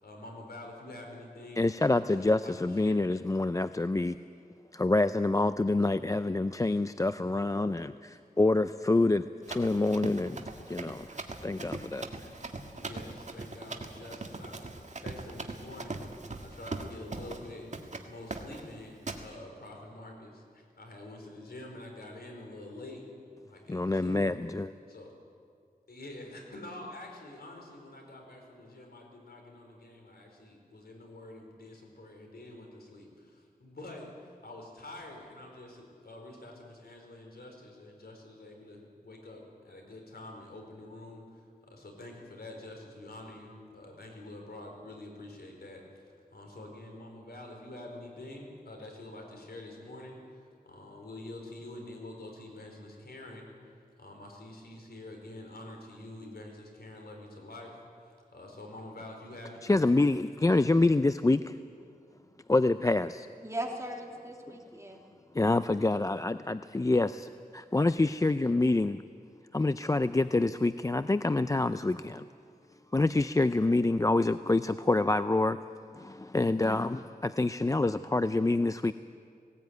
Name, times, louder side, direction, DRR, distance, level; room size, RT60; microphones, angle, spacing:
voice 1, 0.0-1.6 2.0-3.0 7.2-7.3 12.7-16.0 16.4-23.1 23.4-24.3 24.9-25.1 25.9-46.0 46.3-53.5 54.0-59.7, left 1 dB, 75° left, 1 dB, 4.3 m, -47 dB
voice 2, 1.6-4.2 4.7-11.1 11.4-12.3 23.7-24.7 59.6-61.6 62.5-63.3 65.3-69.0 69.5-72.3 72.9-75.6 75.9-78.9, left 2 dB, 20° left, 12 dB, 0.4 m, -27 dB
Run, 9.4-17.5 17.7-18.1 18.3-18.7 19.1-19.2, right 3 dB, 45° right, 1.8 m, -40 dB
voice 3, 63.4-65.0, right 1 dB, 20° right, 1 dB, 3.0 m, -38 dB
18.5 x 17.5 x 9.4 m, 2.3 s
wide cardioid pair, 80°, 16 cm